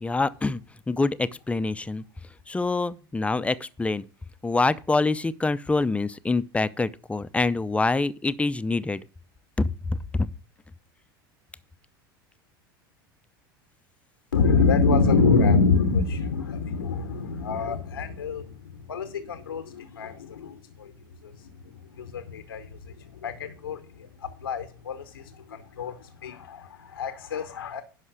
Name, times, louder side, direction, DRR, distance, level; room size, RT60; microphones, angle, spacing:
voice 1, 0.0-0.6 0.9-2.0 2.5-4.0 4.4-9.0 9.6-9.7 10.1-10.3, left 3 dB, 10° left, 0.5 m, -25 dB
voice 2, 14.3-20.9 21.2-27.8, left 4 dB, 85° left, 0.9 m, -26 dB
11.0 x 5.7 x 4.9 m
hypercardioid pair, 80°, 12 cm